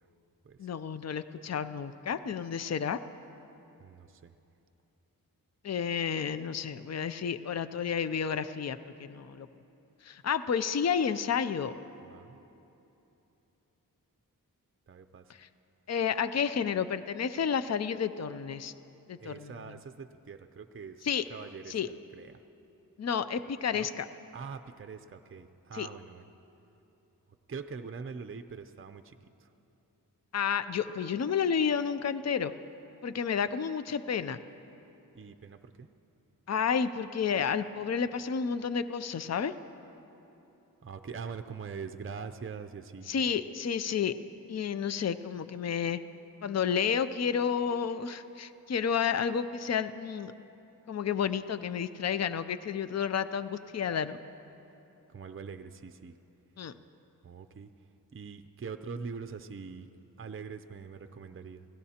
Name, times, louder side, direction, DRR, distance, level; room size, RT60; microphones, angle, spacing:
voice 1, 0.6-3.0 5.6-9.5 10.0-11.7 15.4-15.5 15.9-18.7 19.1-19.5 21.0-21.3 21.7-21.9 23.0-24.1 25.7-25.9 30.3-32.5 33.0-34.4 36.5-39.5 43.1-44.1 44.5-46.0 46.4-50.3 50.9-54.2 56.6-56.7, left 7 dB, 45° left, 12 dB, 0.5 m, -31 dB
voice 2, 3.8-4.3 12.0-12.4 14.9-15.3 19.2-22.4 23.7-23.9 24.3-26.2 27.5-29.5 35.1-35.9 40.8-43.1 55.1-56.2 57.2-57.7 58.1-59.9 60.2-61.7, right 5 dB, 35° right, 8 dB, 0.5 m, -43 dB
30.0 x 17.0 x 2.9 m, 3.0 s
wide cardioid pair, 100°, 36 cm